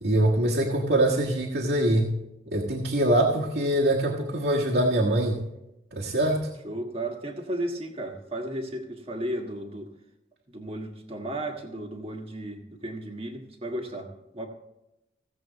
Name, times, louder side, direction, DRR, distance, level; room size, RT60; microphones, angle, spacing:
voice 1, 0.0-2.1 2.5-5.4 5.9-6.5, right 1 dB, 70° right, -5 dB, 1.5 m, -23 dB
voice 2, 6.6-9.9 10.5-14.5, right 1 dB, 30° right, 2 dB, 1.4 m, -34 dB
16.0 x 7.7 x 4.0 m, 0.90 s
head